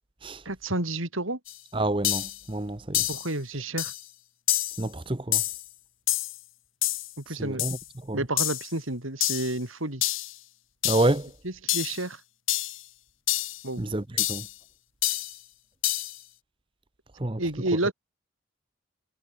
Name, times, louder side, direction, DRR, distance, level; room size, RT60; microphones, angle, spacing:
voice 1, 0.5-1.4 3.1-3.9 7.2-7.6 8.1-10.0 11.4-12.2 13.6-13.8 17.4-17.9, right 2 dB, 85° right, 5.2 m, -30 dB
sound 1, 1.5-1.6 2.0-2.4 2.9-3.3 3.8-4.0 4.5-4.8 5.3-5.7 6.1-6.4 6.8-7.1 7.6-7.8 8.4-8.7 9.2-9.5 10.0-10.3 10.8-11.2 11.7-12.0 12.5-12.8 13.3-13.6 14.2-14.5 15.0-15.4 15.8-16.2, left 15 dB, 80° left, 5.4 m, -27 dB
voice 2, 1.7-3.1 4.8-5.4 7.3-7.8 8.1-8.2 10.8-11.3 13.8-14.5 17.2-17.4, right 1 dB, 25° right, 1.0 m, -28 dB
head